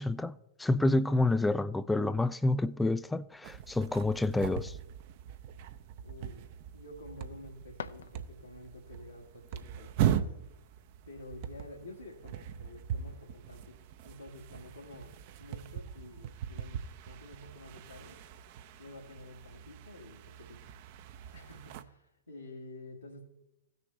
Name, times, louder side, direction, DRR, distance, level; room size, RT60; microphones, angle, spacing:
voice 1, 0.0-4.8, left 2 dB, 5° left, 0.3 m, -28 dB
sound 1, 3.4-21.8, right 10 dB, 45° right, 0.6 m, -39 dB
voice 2, 6.0-6.4 6.7-10.3 11.1-13.8 14.0-15.1 15.4-18.2 18.8-21.1 21.3-23.2, left 1 dB, 85° left, 1.5 m, -50 dB
sound 2, 7.7-8.8, left 7 dB, 70° left, 0.5 m, -46 dB
16.5 x 6.6 x 3.1 m
figure-of-eight pair, 105°, 0 cm